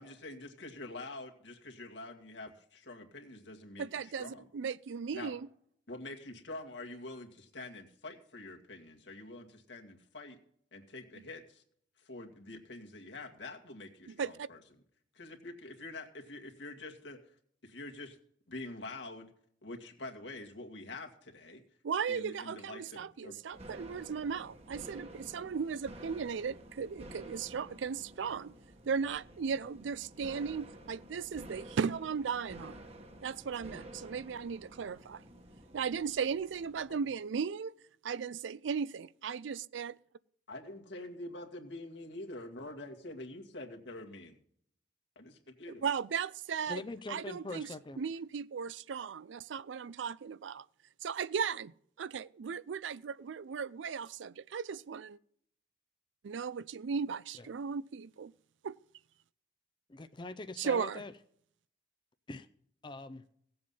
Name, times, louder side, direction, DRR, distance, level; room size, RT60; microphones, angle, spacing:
voice 1, 0.0-4.4 5.1-5.3 5.9-10.4 10.7-11.6 12.0-14.6 15.1-17.2 17.6-18.2 18.5-19.3 19.6-21.6 22.1-23.4 36.9-37.0 40.5-44.4 45.2-45.3 45.6-45.9, left 2 dB, 75° left, 2.0 m, -46 dB
voice 2, 3.8-5.5 14.1-14.5 21.8-28.5 28.9-32.8 33.2-35.2 35.7-37.7 38.0-40.0 45.8-46.8 47.1-47.7 48.0-50.7 51.0-55.2 56.2-58.3 58.6-58.8 60.6-61.0, right 6 dB, 85° right, 0.4 m, -36 dB
sound 1, 23.5-37.0, right 1 dB, 35° right, 1.2 m, -51 dB
voice 3, 46.7-48.0 57.4-57.5 59.9-61.1 62.3-62.5 62.8-63.2, left 2 dB, 25° left, 0.5 m, -43 dB
17.0 x 7.7 x 5.5 m
head